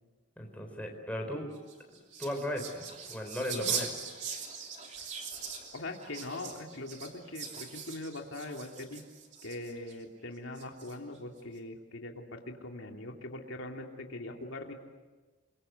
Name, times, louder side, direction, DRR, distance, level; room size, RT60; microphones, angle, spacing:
voice 1, 0.4-1.5 2.2-4.0, left 1 dB, 5° left, 2 dB, 4.3 m, -36 dB
sound 1, 1.6-10.0 10.6-11.2, right 6 dB, 35° right, 3.2 m, -41 dB
voice 2, 5.7-9.0 9.4-14.7, left 2 dB, 85° left, 2 dB, 2.7 m, -42 dB
28.5 x 22.5 x 8.2 m, 1.3 s
head